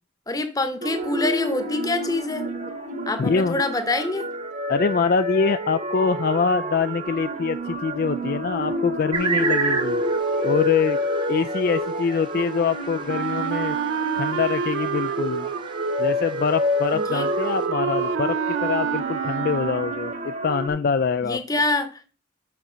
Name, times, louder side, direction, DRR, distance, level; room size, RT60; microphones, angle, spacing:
voice 1, 0.3-2.4 3.1-4.3 16.9-17.3 21.2-21.9, left 2 dB, 20° left, 0.9 m, -25 dB
sound 1, 0.8-20.7, equal, 40° right, 1.2 m, -28 dB
voice 2, 3.2-3.6 4.7-10.0 10.4-11.0 11.3-13.8 14.2-15.5 16.0-21.4, left 5 dB, 45° left, 0.3 m, -24 dB
sound 2, 9.1-17.7, right 5 dB, 25° right, 0.7 m, -33 dB
Wind instrument woodwind instrument, 13.1-20.1, right 8 dB, 65° right, 0.3 m, -29 dB
6.5 x 6.0 x 5.5 m
head